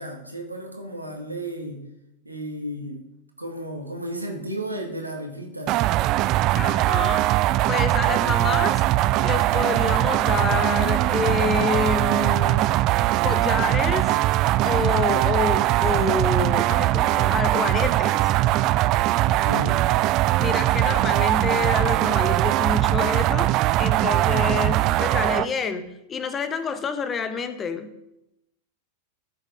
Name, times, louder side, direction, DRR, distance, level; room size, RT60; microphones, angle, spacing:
voice 1, 0.0-1.8 2.3-3.0 3.4-5.8 19.2-19.8, right 1 dB, 85° right, 2 dB, 1.8 m, -33 dB
sound 1, 5.7-25.5, right 16 dB, 40° right, 0.3 m, -21 dB
voice 2, 6.5-8.8 9.2-12.9 13.2-14.2 14.6-18.3 20.4-23.5 23.8-27.9, left 5 dB, 20° left, 10 dB, 1.1 m, -28 dB
13.5 x 6.7 x 5.0 m, 0.86 s
figure-of-eight pair, 90°, 0 cm